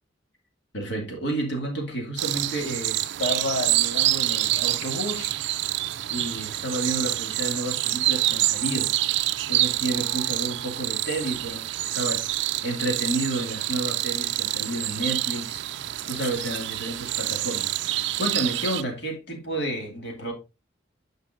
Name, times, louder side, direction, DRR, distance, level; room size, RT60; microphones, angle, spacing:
voice 1, 0.7-5.3 6.1-8.9 9.5-15.6 16.0-20.3, right 1 dB, 60° left, 2.3 m, -31 dB
sound 1, 2.2-18.8, right 15 dB, 65° right, 0.4 m, -27 dB
9.2 x 5.4 x 2.6 m
head